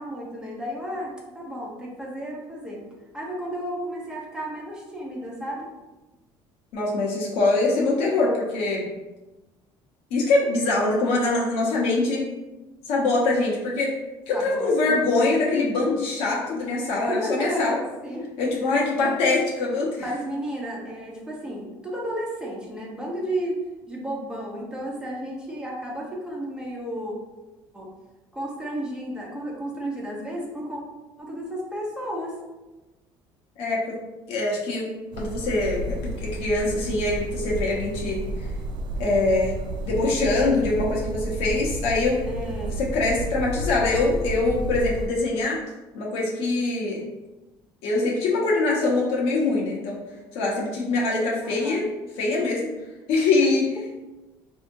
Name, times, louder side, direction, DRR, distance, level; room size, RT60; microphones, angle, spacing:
voice 1, 0.0-2.8 3.1-5.7 14.3-15.0 17.1-18.3 18.7-19.2 20.0-23.6 23.9-27.1 27.7-27.9 28.3-30.8 31.2-32.4 42.2-42.8 51.4-51.8 53.4-53.5, equal, 10° right, -4 dB, 1.0 m, -33 dB
voice 2, 6.7-8.8 10.1-12.2 12.8-13.9 14.3-17.8 18.4-20.0 33.6-34.0 34.3-34.9 35.2-38.2 39.0-39.5 39.8-42.2 42.8-45.6 45.9-47.0 47.8-50.0 50.3-51.9 52.2-52.7 53.1-53.7, left 3 dB, 80° left, -3 dB, 1.1 m, -23 dB
sound 1, 35.1-45.1, right 1 dB, 50° right, 0.3 m, -31 dB
4.0 x 2.8 x 2.7 m, 1.1 s
cardioid pair, 110°, 10 cm